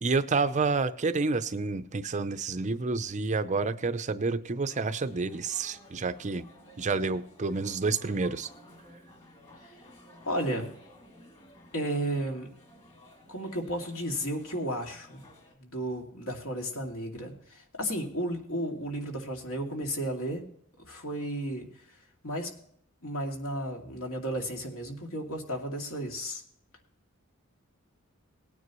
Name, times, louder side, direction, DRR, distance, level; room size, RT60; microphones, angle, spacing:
voice 1, 0.0-6.4 6.8-8.5, right 4 dB, 35° right, 11 dB, 0.6 m, -29 dB
sound 1, 4.7-15.5, left 1 dB, 30° left, 2.6 m, -54 dB
voice 2, 10.3-10.7 11.7-12.5 13.3-15.2 15.6-20.5 20.8-21.7 22.2-22.5 23.0-26.4, equal, 70° left, 1 dB, 2.5 m, -33 dB
18.5 x 9.6 x 3.0 m, 0.65 s
head